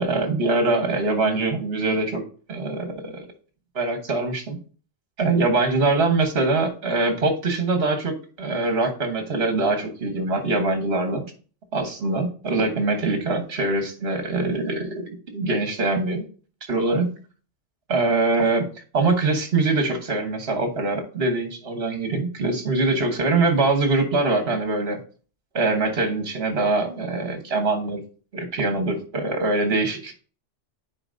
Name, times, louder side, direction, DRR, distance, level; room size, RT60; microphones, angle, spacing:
voice 1, 0.0-2.2 2.5-3.2 3.7-4.6 5.2-11.2 11.7-16.2 16.7-17.1 17.9-18.6 18.9-25.0 25.5-28.0 28.3-30.2, right 3 dB, 55° right, 6 dB, 1.5 m, -23 dB
9.8 x 4.5 x 2.6 m, 0.38 s
omnidirectional pair, 1.2 m